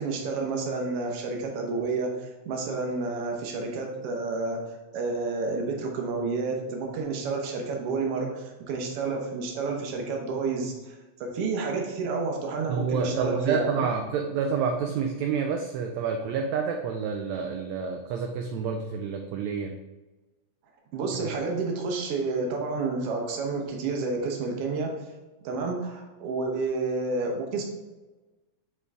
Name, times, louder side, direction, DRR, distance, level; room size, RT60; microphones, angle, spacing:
voice 1, 0.0-4.6 4.9-13.9 20.9-24.9 25.4-27.6, right 3 dB, 65° right, 1 dB, 1.7 m, -30 dB
voice 2, 12.7-19.8 21.2-21.3, right 6 dB, 80° right, 3 dB, 1.7 m, -28 dB
6.2 x 4.5 x 3.4 m, 1.2 s
omnidirectional pair, 3.5 m